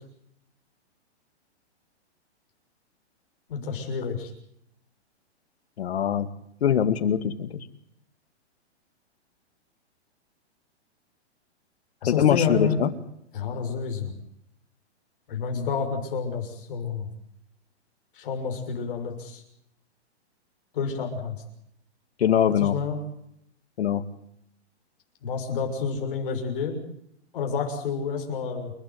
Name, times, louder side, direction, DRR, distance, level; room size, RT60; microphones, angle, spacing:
voice 1, 3.5-4.3 12.0-12.8 13.3-14.1 15.3-17.1 18.1-19.4 20.7-21.4 22.5-23.0 25.2-26.8 27.3-28.7, left 5 dB, 50° left, 4 dB, 6.7 m, -29 dB
voice 2, 5.8-6.3 6.6-7.5 12.1-12.9 22.2-22.8 23.8-24.0, left 9 dB, 65° left, 11 dB, 2.3 m, -22 dB
29.0 x 13.0 x 9.7 m, 0.75 s
hypercardioid pair, 170°, 34 cm